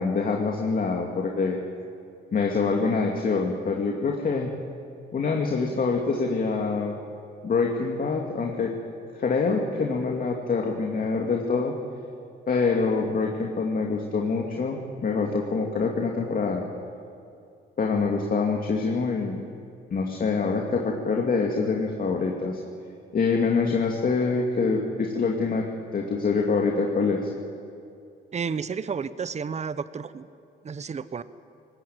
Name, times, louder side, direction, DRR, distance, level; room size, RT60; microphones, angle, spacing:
voice 1, 0.0-1.6 2.3-4.5 5.1-7.0 7.4-8.7 9.2-11.7 12.5-14.8 15.0-16.6 17.8-19.4 19.9-22.6 23.1-25.6 25.9-27.3, left 4 dB, 45° left, 0 dB, 2.4 m, -25 dB
voice 2, 28.3-30.3 30.6-31.2, right 6 dB, 35° right, 14 dB, 0.9 m, -31 dB
20.0 x 17.0 x 9.0 m, 2.5 s
cardioid pair, 90°, 20 cm